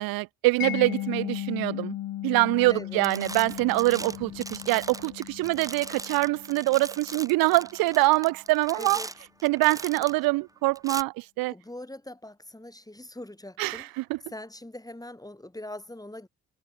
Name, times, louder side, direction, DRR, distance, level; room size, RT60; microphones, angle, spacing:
voice 1, 0.0-1.9 2.2-9.0 9.4-11.5 13.6-14.2, right 22 dB, 80° right, 0.5 m, -24 dB
Mallet percussion, 0.6-7.4, left 13 dB, 75° left, 2.7 m, -36 dB
sound 1, 2.5-2.8 3.0-10.3 10.8-11.0, right 2 dB, 10° right, 0.7 m, -40 dB
voice 2, 2.7-3.0 8.7-9.1 9.9-10.1 11.5-13.9 14.3-16.3, left 1 dB, 10° left, 5.1 m, -42 dB
supercardioid pair, 55°, 35 cm